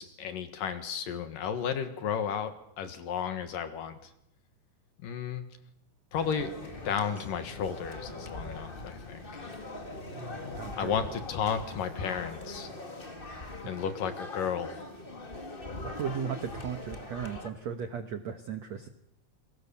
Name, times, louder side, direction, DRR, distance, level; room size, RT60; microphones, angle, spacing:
voice 1, 0.0-4.1 5.0-5.4 6.1-6.5 6.8-9.5 10.8-12.7 13.6-14.9, left 7 dB, 60° left, 9 dB, 2.9 m, -33 dB
sound 1, 6.1-17.5, left 2 dB, 45° left, 0.6 m, -42 dB
voice 2, 10.5-10.9 13.6-13.8 15.6-18.9, right 7 dB, 70° right, 8 dB, 1.6 m, -36 dB
28.5 x 22.5 x 7.0 m, 0.74 s
omnidirectional pair, 4.8 m